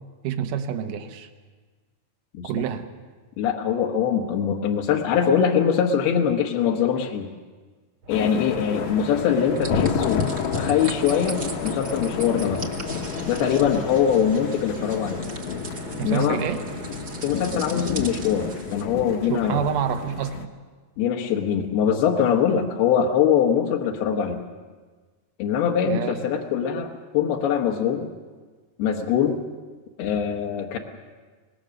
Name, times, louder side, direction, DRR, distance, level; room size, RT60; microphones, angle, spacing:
voice 1, 0.2-1.3 2.4-2.9 16.0-16.6 19.3-20.5 25.8-26.2, right 8 dB, 70° right, 8 dB, 2.5 m, -27 dB
voice 2, 3.4-7.3 8.1-10.2 10.6-12.7 13.3-15.2 16.0-16.4 17.2-19.6 21.0-24.4 25.4-26.9 27.1-28.1 28.8-29.4 30.0-30.8, left 8 dB, 90° left, 1 dB, 3.1 m, -22 dB
sound 1, 8.0-18.7, right 2 dB, 50° right, 1.7 m, -39 dB
sound 2, 8.1-20.5, left 6 dB, 70° left, 1.9 m, -30 dB
sound 3, 9.6-18.8, right 3 dB, 85° right, 0.7 m, -40 dB
25.0 x 19.5 x 6.4 m, 1.4 s
omnidirectional pair, 4.4 m